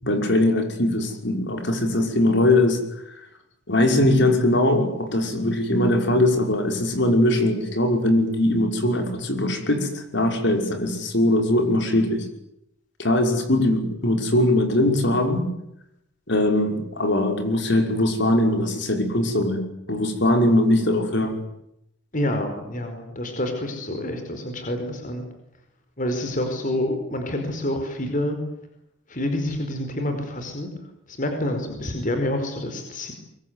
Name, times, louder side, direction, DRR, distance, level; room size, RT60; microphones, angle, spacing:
voice 1, 0.0-2.8 3.7-12.3 13.0-15.5 16.3-19.6 19.9-21.4, left 1 dB, 60° left, 5 dB, 5.6 m, -21 dB
voice 2, 22.1-25.2 26.0-28.4 29.1-30.7 31.1-33.1, left 1 dB, 40° left, 5 dB, 4.9 m, -27 dB
24.5 x 23.5 x 9.7 m, 0.79 s
head